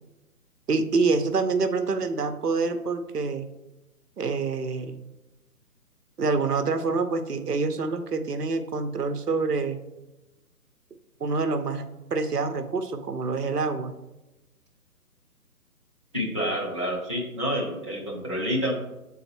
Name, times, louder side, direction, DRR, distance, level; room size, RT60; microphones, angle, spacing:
voice 1, 0.7-3.5 4.2-5.0 6.2-9.8 11.2-13.9, right 4 dB, 80° right, 7 dB, 0.8 m, -26 dB
voice 2, 16.1-18.7, equal, 20° left, -5 dB, 0.5 m, -28 dB
8.4 x 3.9 x 3.0 m, 1.0 s
figure-of-eight pair, 140°, 47 cm